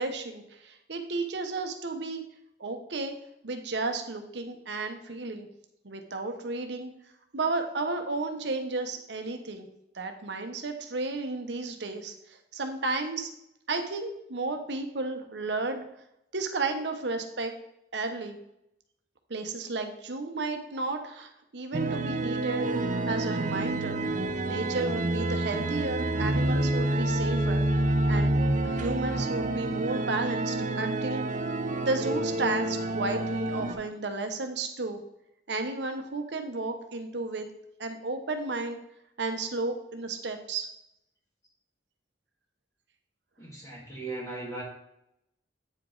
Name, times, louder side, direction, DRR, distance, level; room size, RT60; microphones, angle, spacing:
voice 1, 0.0-2.2 2.6-3.1 3.4-5.5 5.8-6.9 7.3-9.7 9.9-13.3 13.7-15.8 16.3-17.5 17.9-18.4 19.3-24.0 24.4-27.6 28.1-28.3 28.6-31.2 31.7-35.0 35.5-37.5 37.8-38.8 39.2-40.7, right 3 dB, 70° right, 6 dB, 0.9 m, -33 dB
sound 1, 21.7-33.7, right 1 dB, 45° right, 0.7 m, -28 dB
voice 2, 43.4-44.6, right 2 dB, 20° left, -5 dB, 1.3 m, -38 dB
8.6 x 4.9 x 3.9 m, 0.81 s
head